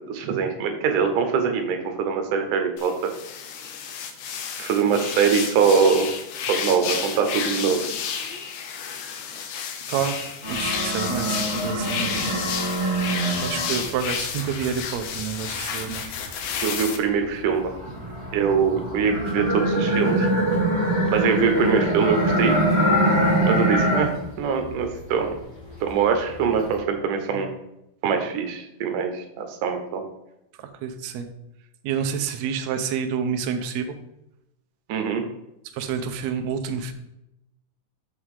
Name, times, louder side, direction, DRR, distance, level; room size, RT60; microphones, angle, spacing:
voice 1, 0.0-2.9 4.6-6.1 6.5-7.9 16.6-17.7 18.3-20.3 21.1-22.6 23.5-24.1 24.4-25.3 25.8-27.5 28.0-30.0 34.9-35.2, right 6 dB, 70° right, 5 dB, 2.3 m, -23 dB
sound 1, 2.8-17.0, left 7 dB, 75° left, 1.9 m, -31 dB
voice 2, 9.9-12.2 13.4-16.0 27.3-27.4 30.8-31.3 31.8-33.9 35.7-36.9, right 7 dB, 90° right, 6 dB, 1.5 m, -28 dB
sound 2, 10.4-14.1 14.5-16.8 17.3-24.3 24.6-25.3 25.7-26.7, right 1 dB, 20° right, 3.1 m, -24 dB
6.4 x 5.7 x 4.8 m, 0.86 s
omnidirectional pair, 4.1 m